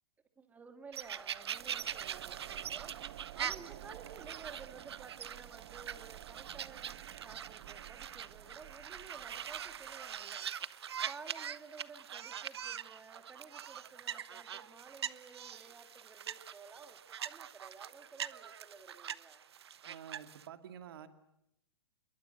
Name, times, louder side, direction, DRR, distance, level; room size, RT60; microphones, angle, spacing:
voice 1, 0.4-19.4, right 4 dB, 10° right, 7 dB, 2.5 m, -54 dB
sound 1, 0.9-20.5, right 9 dB, 80° right, 1.1 m, -43 dB
sound 2, 1.0-10.3, right 15 dB, 45° right, 0.9 m, -52 dB
voice 2, 19.8-21.1, right 9 dB, 65° right, 8 dB, 2.5 m, -49 dB
26.5 x 22.5 x 7.9 m, 0.81 s
hypercardioid pair, 140°, 13 cm